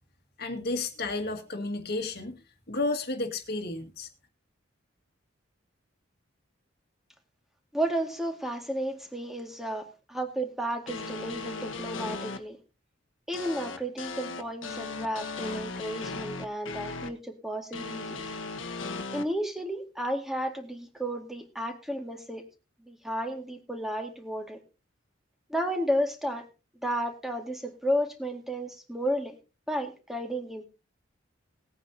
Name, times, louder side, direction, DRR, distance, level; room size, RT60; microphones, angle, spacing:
voice 1, 0.4-2.4 2.7-4.1, left 2 dB, 55° left, 6 dB, 1.8 m, -32 dB
voice 2, 7.7-12.6 13.3-18.2 19.1-22.4 22.9-24.6 25.5-26.4 26.8-29.4 29.7-30.7, equal, ahead, 4 dB, 2.0 m, -32 dB
sound 1, 10.9-12.4 13.3-17.1 17.7-19.2, left 3 dB, 80° left, 1.4 m, -37 dB
19.5 x 9.2 x 2.8 m, 0.30 s
head